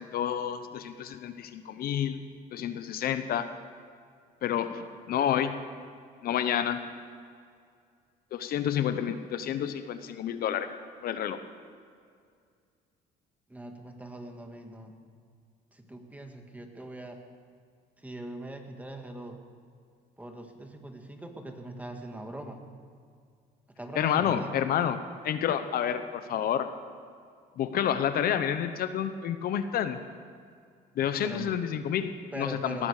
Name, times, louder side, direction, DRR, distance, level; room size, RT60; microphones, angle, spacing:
voice 1, 0.0-3.5 4.4-5.5 6.2-6.9 8.3-10.7 11.0-11.4 23.9-25.0 25.2-26.7 27.6-30.0 31.0-32.9, left 9 dB, 65° left, 10 dB, 0.9 m, -29 dB
voice 2, 13.5-14.9 15.7-17.2 18.0-19.4 20.2-22.6 23.8-24.5 31.2-31.5 32.3-32.9, right 1 dB, 10° right, 4 dB, 1.8 m, -41 dB
19.0 x 14.0 x 5.0 m, 2.2 s
cardioid pair, 110°, 17 cm